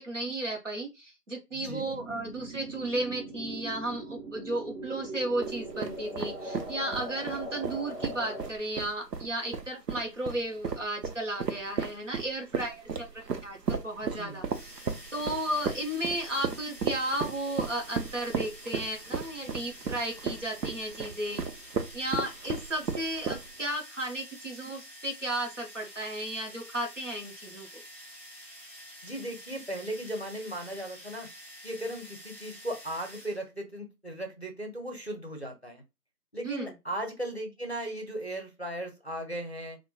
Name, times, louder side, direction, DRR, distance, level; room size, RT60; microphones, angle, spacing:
voice 1, 0.0-14.4 15.1-21.4 21.9-27.7 36.4-36.7, right 1 dB, 50° right, 1 dB, 0.7 m, -34 dB
voice 2, 1.5-1.9 14.1-14.4 29.0-31.3 31.6-35.8 36.3-39.8, right 1 dB, 45° left, 3 dB, 0.6 m, -37 dB
sound 1, 1.6-8.5, right 1 dB, ahead, 0.6 m, -40 dB
sound 2, 5.4-23.7, right 5 dB, 90° right, 0.6 m, -35 dB
sound 3, 14.5-33.4, equal, 30° right, 1.3 m, -48 dB
2.8 x 2.1 x 2.2 m, 0.24 s
figure-of-eight pair, 170°, 48 cm